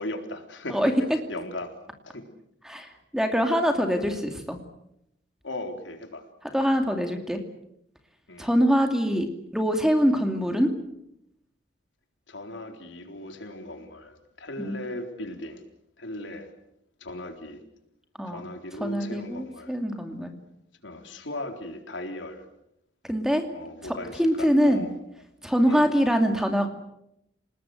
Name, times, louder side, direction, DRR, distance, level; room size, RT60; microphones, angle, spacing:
voice 1, 0.0-0.9 1.3-1.7 2.1-2.2 5.4-6.2 8.3-8.5 12.3-15.6 16.0-16.5 17.0-17.6 18.3-19.7 20.8-22.5 23.5-24.9 25.7-25.9, left 1 dB, 85° left, 5 dB, 3.9 m, -37 dB
voice 2, 0.7-1.2 2.6-4.6 6.5-7.4 8.4-9.3 9.5-10.7 14.6-14.8 18.2-18.4 18.8-20.3 23.0-23.4 23.8-24.9 25.4-26.7, equal, 5° right, 5 dB, 2.5 m, -24 dB
29.0 x 20.0 x 7.8 m, 0.78 s
head